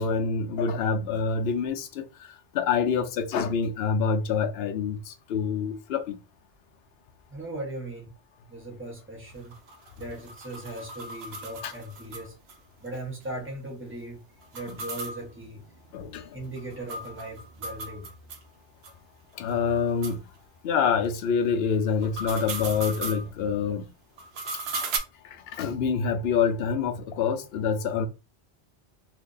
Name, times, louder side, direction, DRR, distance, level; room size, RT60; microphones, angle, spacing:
voice 1, 0.0-6.2 11.6-11.7 15.9-16.3 19.3-20.2 20.6-23.9 25.2-28.1, left 6 dB, 70° left, 0.8 m, -26 dB
voice 2, 7.3-8.1 8.5-9.5 10.0-12.4 12.8-14.2 14.5-15.7 16.3-18.1, right 1 dB, 10° right, 1.0 m, -38 dB
sound 1, 9.3-12.5 12.9-13.0 13.2-13.3 14.4-18.4 18.8-18.9 19.5-19.6 20.0-20.2 21.9-23.2 24.2-25.0, right 3 dB, 70° right, 0.9 m, -37 dB
2.7 x 2.6 x 3.7 m
omnidirectional pair, 1.1 m